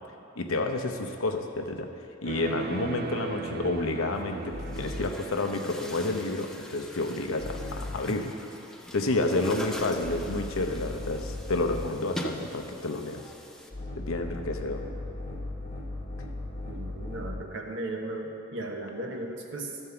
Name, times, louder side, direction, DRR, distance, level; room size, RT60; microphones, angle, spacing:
voice 1, 0.4-1.9 2.2-8.3 8.9-13.3 14.0-14.9, left 2 dB, 90° left, 4 dB, 0.8 m, -30 dB
sound 1, 2.3-6.3, right 4 dB, 50° right, 0.5 m, -38 dB
sound 2, 2.6-5.4 7.4-8.2 9.1-12.1 13.7-17.6, left 2 dB, 30° left, 1.1 m, -38 dB
Chatter / Gurgling / Tap, 3.8-3.9 4.6-13.7, equal, 5° left, 0.6 m, -42 dB
voice 2, 16.7-19.8, right 2 dB, 65° right, 1 dB, 1.1 m, -36 dB
13.0 x 4.5 x 6.9 m, 2.8 s
head